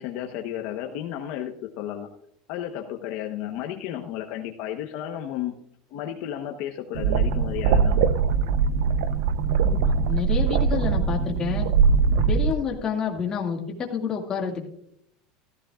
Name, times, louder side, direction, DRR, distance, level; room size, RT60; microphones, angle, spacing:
voice 1, 0.0-2.1 2.5-5.5 5.9-8.0, left 11 dB, 50° left, 3 dB, 1.1 m, -33 dB
sound 1, 6.9-12.5, right 5 dB, 70° right, 0.8 m, -21 dB
voice 2, 10.1-11.7 12.3-14.7, left 6 dB, 20° left, 0 dB, 2.2 m, -28 dB
15.5 x 14.5 x 2.5 m, 0.72 s
supercardioid pair, 170°, 3 cm